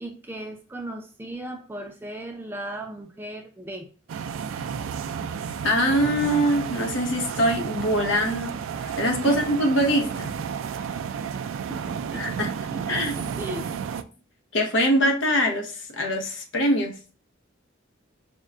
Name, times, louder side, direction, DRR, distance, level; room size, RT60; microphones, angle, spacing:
voice 1, 0.0-3.9 9.2-9.4 10.8-12.3 12.7-13.8, right 1 dB, 10° right, 4 dB, 0.4 m, -37 dB
sound 1, 4.1-14.0, right 7 dB, 80° right, 0.3 m, -32 dB
voice 2, 5.6-10.3 12.1-12.5 12.9-13.2 14.5-17.0, equal, 65° left, 3 dB, 0.8 m, -23 dB
5.3 x 2.2 x 2.4 m, 0.37 s
head